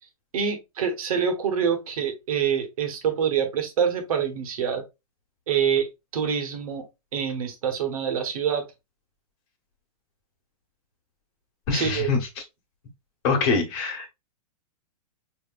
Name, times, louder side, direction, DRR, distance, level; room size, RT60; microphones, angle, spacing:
voice 1, 0.3-4.8 5.5-5.9 6.1-6.8 7.1-8.7 11.7-12.1, right 7 dB, 70° right, 1.2 m, -26 dB
voice 2, 11.7-12.2 13.2-14.1, left 4 dB, 45° left, 1.5 m, -24 dB
4.9 x 2.9 x 2.4 m
hypercardioid pair, 130°, 19 cm